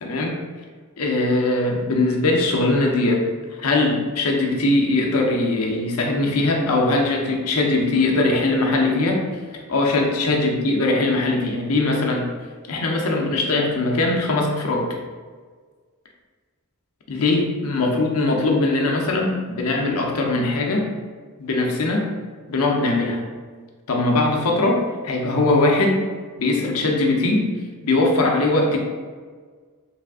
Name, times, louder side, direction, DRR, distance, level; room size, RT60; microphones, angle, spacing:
voice 1, 0.0-0.4 1.0-3.2 3.6-9.3 9.5-12.3 12.7-14.9 17.1-20.9 21.4-22.1 22.5-23.2 23.9-26.0 26.4-27.5 27.8-28.8, left 2 dB, 75° left, 0 dB, 0.6 m, -21 dB
3.4 x 2.4 x 3.5 m, 1.6 s
head